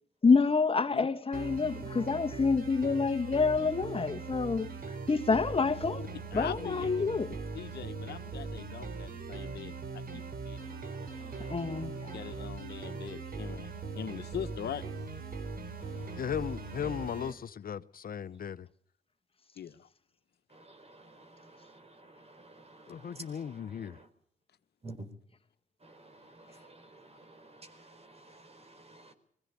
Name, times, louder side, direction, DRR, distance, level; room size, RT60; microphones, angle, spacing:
voice 1, 0.2-6.0 6.3-7.4 11.4-12.1, left 4 dB, 35° left, 1.5 m, -28 dB
sound 1, 1.3-17.3, right 4 dB, 60° right, 3.5 m, -40 dB
voice 2, 6.3-6.9 7.5-10.6 12.1-13.7 13.9-14.8 19.6-19.9, left 9 dB, 80° left, 1.1 m, -41 dB
voice 3, 10.5-12.5 15.8-17.4 20.5-24.1 24.8-25.1 25.8-29.1, right 2 dB, 35° right, 4.4 m, -53 dB
voice 4, 16.2-18.7 22.9-24.0, left 8 dB, 60° left, 0.8 m, -37 dB
22.5 x 15.5 x 8.3 m
cardioid pair, 75°, 17 cm